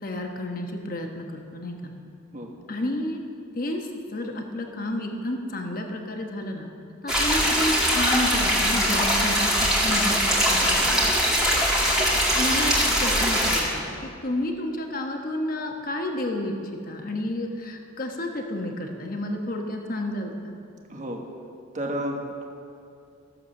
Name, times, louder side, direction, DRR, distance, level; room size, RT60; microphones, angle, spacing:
voice 1, 0.0-1.9 2.7-3.2 3.5-6.7 7.0-10.8 12.0-16.5 16.8-20.5, left 1 dB, 45° left, 3 dB, 1.1 m, -31 dB
sound 1, 7.1-13.6, equal, ahead, 2.2 m, -22 dB
voice 2, 10.6-11.4 20.9-21.2 21.7-22.4, equal, 35° right, 1 dB, 1.3 m, -33 dB
14.0 x 7.6 x 6.4 m, 2.5 s
head